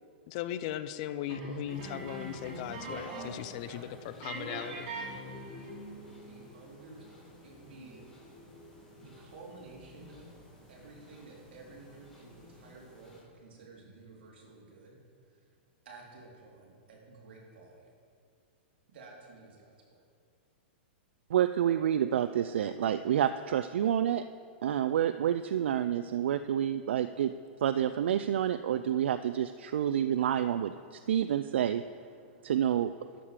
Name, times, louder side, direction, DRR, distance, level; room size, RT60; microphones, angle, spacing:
voice 1, 0.3-3.0 3.4-3.9 4.2-4.9, left 12 dB, 40° left, 13 dB, 0.4 m, -38 dB
voice 2, 1.2-1.6 2.5-5.1 6.1-8.0 9.0-10.3 10.7-15.0 15.3-15.4 15.8-17.9 18.9-20.0, right 3 dB, 65° right, -3 dB, 3.0 m, -52 dB
sound 1, 1.3-3.5 3.7-3.9 4.2-5.8, right 2 dB, 45° right, 2.9 m, -41 dB
sound 2, 1.7-13.2, left 1 dB, 5° left, 1.8 m, -52 dB
voice 3, 21.3-24.2 24.6-27.3 27.6-31.8 32.4-32.9, right 10 dB, 80° right, 11 dB, 0.3 m, -28 dB
12.0 x 7.3 x 5.0 m, 2.2 s
supercardioid pair, 160°, 6 cm